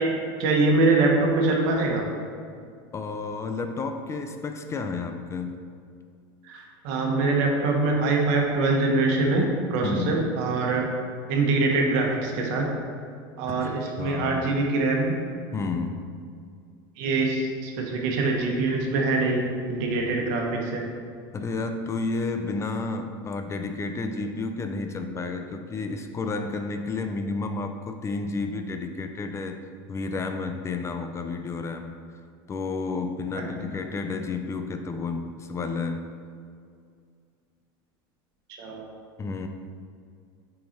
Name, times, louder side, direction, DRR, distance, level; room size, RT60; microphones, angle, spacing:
voice 1, 0.0-2.0 6.4-10.9 11.3-12.7 13.4-15.1 17.0-20.8 33.3-33.4 38.6-38.9, right 3 dB, 65° right, 0 dB, 1.3 m, -24 dB
voice 2, 2.9-5.7 9.8-10.2 13.5-14.7 15.5-16.2 21.3-29.6 29.9-32.2 32.5-36.1 39.2-39.5, left 3 dB, 25° left, 7 dB, 0.4 m, -31 dB
6.1 x 4.7 x 4.2 m, 2.2 s
supercardioid pair, 120°, 12 cm